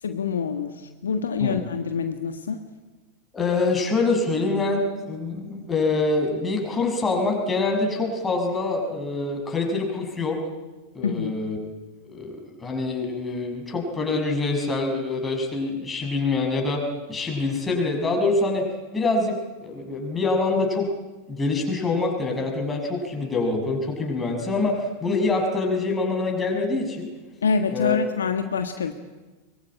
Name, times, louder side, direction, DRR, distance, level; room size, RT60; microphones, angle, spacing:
voice 1, 0.0-2.6 11.0-11.4 27.4-28.9, left 6 dB, 70° left, 7 dB, 1.5 m, -26 dB
voice 2, 3.3-10.4 10.9-11.6 12.1-18.6 18.9-20.9 21.3-27.1 27.7-28.0, left 3 dB, 15° left, 1 dB, 6.3 m, -25 dB
23.5 x 23.0 x 8.9 m, 1.2 s
figure-of-eight pair, 90°, 0 cm